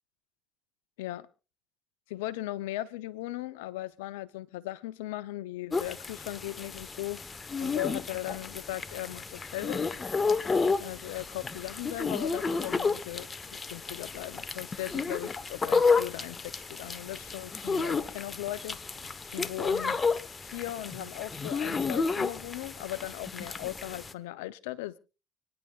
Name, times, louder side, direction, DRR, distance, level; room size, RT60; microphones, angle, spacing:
voice 1, 2.1-7.2 7.6-9.8 10.8-18.8 19.3-20.0 20.4-25.0, left 16 dB, 85° left, 16 dB, 0.7 m, -38 dB
sound 1, 5.7-24.1, left 4 dB, 25° left, 1.1 m, -31 dB
30.0 x 10.5 x 2.5 m, 0.34 s
hypercardioid pair, 75°, 0 cm